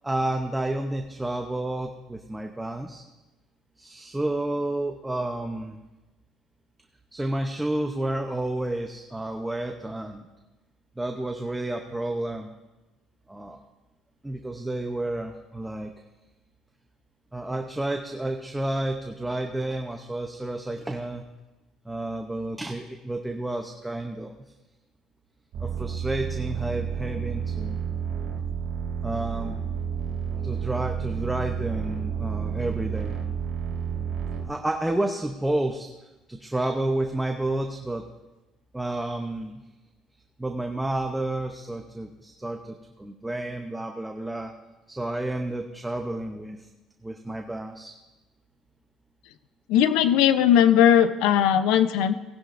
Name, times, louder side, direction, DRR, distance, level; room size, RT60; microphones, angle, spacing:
voice 1, 0.0-3.0 3.8-5.8 7.1-10.3 11.0-12.6 13.3-13.7 14.2-15.9 17.3-21.3 21.8-24.3 25.6-27.8 29.0-29.6 30.4-33.2 34.4-35.9 36.3-38.0 38.7-39.6 40.4-44.5 44.9-46.7 47.0-47.9, right 1 dB, 5° right, 4 dB, 0.7 m, -30 dB
sound 1, 25.5-34.4, right 7 dB, 60° right, 2.4 m, -30 dB
voice 2, 49.7-52.1, left 9 dB, 90° left, 11 dB, 0.6 m, -19 dB
18.5 x 10.5 x 2.6 m, 1.1 s
cardioid pair, 140°, 0 cm